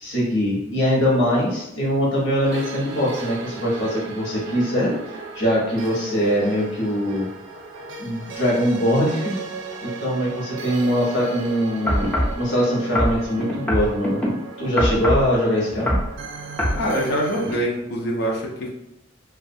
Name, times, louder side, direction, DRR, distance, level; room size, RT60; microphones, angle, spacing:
voice 1, 0.0-4.9 5.3-7.3 8.0-9.3 9.8-12.1 12.3-14.2 14.6-16.0, equal, 85° left, -4 dB, 1.0 m, -22 dB
sound 1, 2.4-17.5, right 4 dB, 70° right, 0.4 m, -36 dB
sound 2, 11.9-12.4 13.0-14.3 14.8-15.3 15.7-16.1 16.6-16.8 17.4-17.5, equal, 5° left, 0.5 m, -22 dB
voice 2, 16.8-18.7, equal, 60° left, -2 dB, 0.5 m, -24 dB
2.4 x 2.3 x 2.6 m, 0.86 s
head